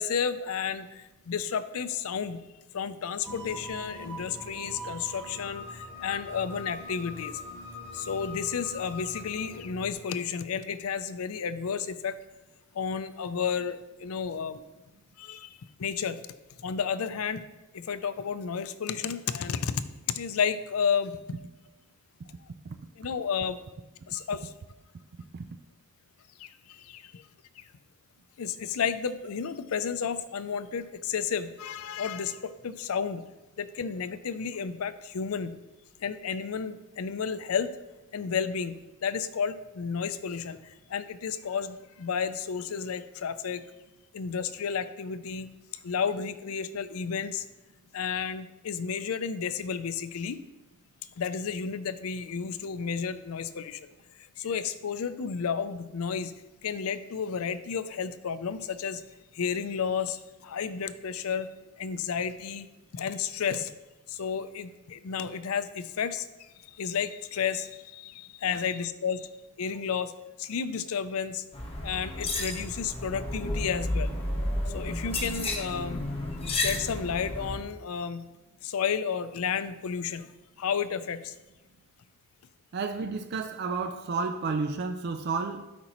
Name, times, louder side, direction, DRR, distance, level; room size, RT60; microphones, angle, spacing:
voice 1, 0.0-2.4 2.7-7.4 7.9-12.2 12.7-14.6 15.2-16.2 16.6-17.4 17.7-21.2 23.0-23.6 24.1-24.5 26.4-27.2 27.6-27.7 28.4-33.3 33.6-35.6 36.0-37.7 38.1-43.6 44.1-45.5 45.8-47.5 47.9-50.4 51.2-53.9 54.4-56.4 56.6-59.0 59.3-61.5 61.8-62.7 62.9-63.7 64.1-66.3 66.7-69.3 69.6-70.1 70.4-71.4 71.8-74.1 74.7-76.1 76.5-78.3 78.6-80.3 80.6-81.3, left 6 dB, 80° left, 0.5 m, -32 dB
sound 1, 3.2-9.9, left 1 dB, 10° left, 1.9 m, -42 dB
sound 2, 71.5-77.6, left 1 dB, 25° left, 1.1 m, -32 dB
voice 2, 82.7-85.7, right 4 dB, 50° right, 0.4 m, -31 dB
12.5 x 5.1 x 3.0 m
head